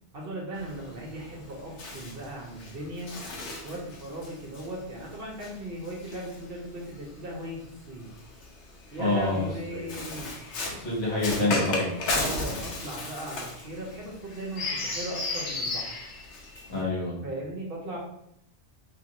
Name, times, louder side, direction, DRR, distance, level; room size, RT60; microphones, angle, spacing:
voice 1, 0.1-3.1 3.6-8.1 8.9-10.3 12.1-15.9 17.2-18.0, right 1 dB, 60° right, -2 dB, 0.9 m, -38 dB
Bird, 0.5-7.1 8.0-16.8, left 2 dB, 80° left, 1.0 m, -35 dB
voice 2, 9.0-9.8 10.8-11.9 16.7-17.1, left 2 dB, 65° left, -6 dB, 1.4 m, -27 dB
2.8 x 2.5 x 2.9 m, 0.75 s
omnidirectional pair, 1.2 m